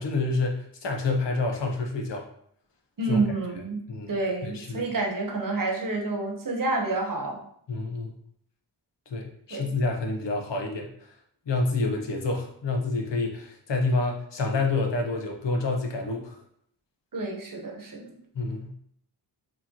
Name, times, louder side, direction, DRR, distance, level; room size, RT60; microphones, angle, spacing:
voice 1, 0.0-2.2 3.1-3.2 3.9-4.1 4.4-4.8 7.7-8.1 9.1-10.9 11.5-16.4 18.3-18.7, left 3 dB, 75° left, 2 dB, 0.9 m, -28 dB
voice 2, 3.0-3.8 4.1-7.4 9.5-9.7 17.1-18.2, right 3 dB, 50° right, 1 dB, 1.0 m, -29 dB
4.7 x 2.9 x 2.9 m, 0.66 s
wide cardioid pair, 80°, 43 cm